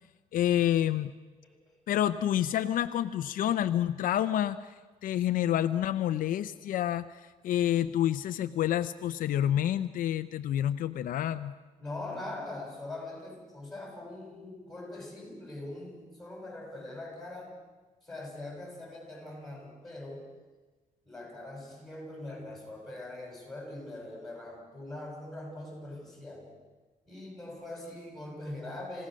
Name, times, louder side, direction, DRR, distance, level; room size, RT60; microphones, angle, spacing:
voice 1, 0.3-1.1 1.9-4.7 5.0-11.5, left 11 dB, 70° left, 10 dB, 0.7 m, -28 dB
voice 2, 11.8-17.5 18.0-20.2 21.1-26.6 27.1-29.1, left 2 dB, ahead, 0 dB, 7.1 m, -42 dB
27.5 x 16.5 x 6.4 m, 1.2 s
cardioid pair, 145°, 15 cm